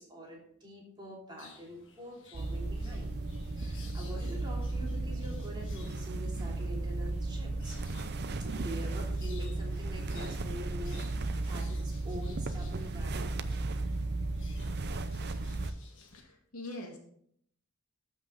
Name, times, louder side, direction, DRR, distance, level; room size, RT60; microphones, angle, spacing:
voice 1, 0.0-3.1 3.5-7.8 8.5-13.4, equal, 20° right, -3 dB, 3.0 m, -45 dB
sound 1, 1.4-16.2, left 5 dB, 60° left, 1.6 m, -58 dB
sound 2, 2.3-15.7, right 2 dB, 50° right, 0.6 m, -35 dB
voice 2, 16.1-17.0, left 1 dB, 90° left, 1 dB, 2.4 m, -43 dB
13.5 x 5.6 x 3.9 m, 0.67 s
head